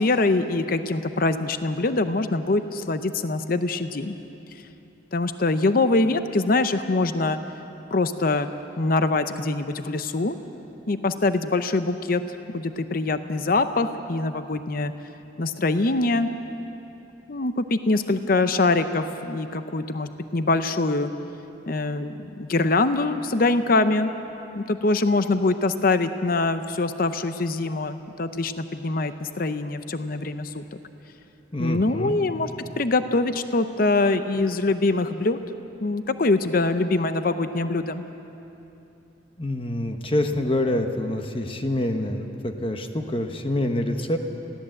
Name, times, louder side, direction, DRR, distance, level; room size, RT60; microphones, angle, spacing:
voice 1, 0.0-4.2 5.1-7.4 7.9-8.5 8.8-10.4 10.9-12.2 12.5-14.9 15.4-16.3 17.3-21.1 21.7-24.1 24.5-30.6 31.6-32.5 32.8-35.4 35.8-38.0, left 2 dB, 50° left, 10 dB, 0.7 m, -23 dB
voice 2, 31.5-32.2 39.4-44.2, left 1 dB, 30° left, 5 dB, 1.0 m, -26 dB
21.5 x 16.5 x 7.7 m, 2.9 s
head